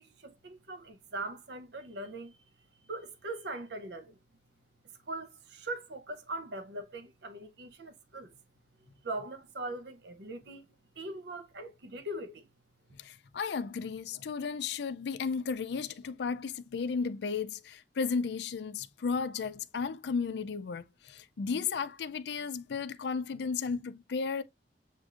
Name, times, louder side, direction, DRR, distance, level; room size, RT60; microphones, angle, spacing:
voice 1, 0.0-2.4 2.8-4.2 5.1-8.3 9.0-10.7 11.0-12.5, right 2 dB, 65° right, 0.7 m, -41 dB
voice 2, 13.0-24.4, left 5 dB, 65° left, 0.4 m, -34 dB
7.4 x 2.6 x 2.4 m
head